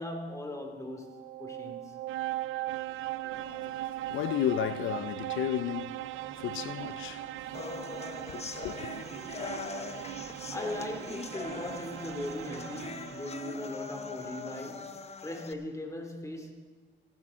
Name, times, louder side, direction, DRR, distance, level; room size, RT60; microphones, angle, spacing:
voice 1, 0.0-2.0 10.5-16.5, left 1 dB, 15° left, 2.4 m, -39 dB
sound 1, 0.9-13.7, right 15 dB, 85° right, 0.4 m, -39 dB
voice 2, 3.2-7.6 8.3-8.9, left 12 dB, 80° left, 0.5 m, -34 dB
sound 2, 6.1-14.3, left 1 dB, 50° left, 3.2 m, -55 dB
sound 3, 7.5-15.5, left 4 dB, 30° left, 0.9 m, -41 dB
18.5 x 12.0 x 3.7 m
cardioid pair, 90°, 20 cm